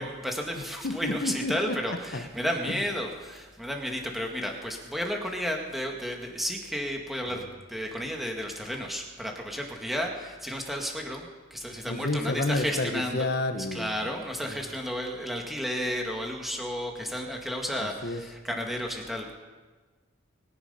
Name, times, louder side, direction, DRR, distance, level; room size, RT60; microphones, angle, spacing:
voice 1, 0.0-7.4 7.7-13.3 13.7-19.4, equal, ahead, 1 dB, 1.8 m, -32 dB
voice 2, 0.8-1.7 2.1-2.2 11.9-13.9 14.4-14.5 17.8-18.2, left 2 dB, 55° left, 7 dB, 1.1 m, -30 dB
22.5 x 10.5 x 5.5 m, 1.3 s
head